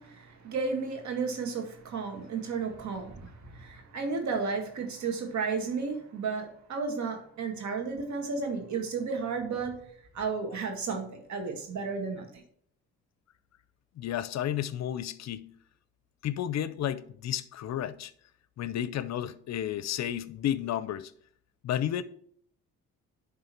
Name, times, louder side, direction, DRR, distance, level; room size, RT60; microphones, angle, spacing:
voice 1, 0.0-9.8 10.1-12.3, right 4 dB, 65° right, 1.9 m, -33 dB
voice 2, 14.0-15.5 16.2-18.1 18.6-21.1 21.6-22.0, left 11 dB, 60° left, 0.6 m, -32 dB
10.5 x 3.7 x 4.4 m
cardioid pair, 90°, 30 cm